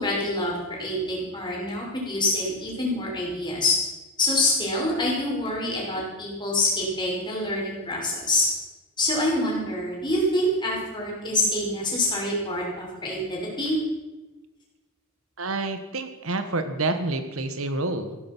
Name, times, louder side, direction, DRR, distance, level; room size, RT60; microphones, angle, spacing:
voice 1, 0.0-3.8 4.2-8.5 9.0-13.8, left 1 dB, 20° left, -4 dB, 5.8 m, -26 dB
voice 2, 15.4-18.2, right 2 dB, 70° right, 9 dB, 1.3 m, -28 dB
16.0 x 12.5 x 6.1 m, 1.1 s
head